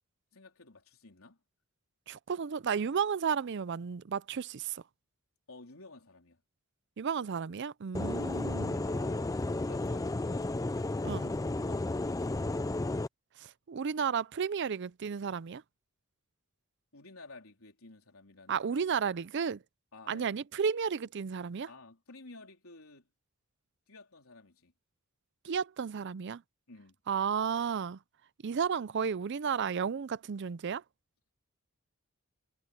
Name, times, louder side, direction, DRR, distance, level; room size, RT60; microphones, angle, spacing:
voice 1, 0.3-1.4 5.5-6.4 8.1-10.6 16.9-18.7 19.9-20.4 21.7-23.1 23.9-24.7 26.7-27.0, left 3 dB, 70° left, 3.9 m, -53 dB
voice 2, 2.1-4.8 7.0-8.8 11.0-11.3 13.4-15.6 18.5-19.6 20.1-21.7 25.4-26.4 27.1-28.0 28.4-30.8, right 6 dB, 55° right, 0.4 m, -33 dB
sound 1, 7.9-13.1, left 2 dB, 15° left, 0.4 m, -33 dB
head